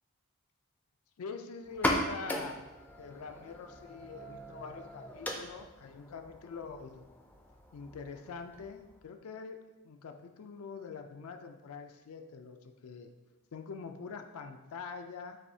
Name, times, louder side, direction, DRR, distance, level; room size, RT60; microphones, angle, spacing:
voice 1, 1.2-2.6 3.0-7.0 7.7-13.1 13.5-15.4, left 5 dB, 80° left, 6 dB, 0.4 m, -44 dB
sound 1, 1.7-9.1, left 1 dB, 5° left, 0.3 m, -39 dB
7.3 x 2.7 x 2.7 m, 1.1 s
head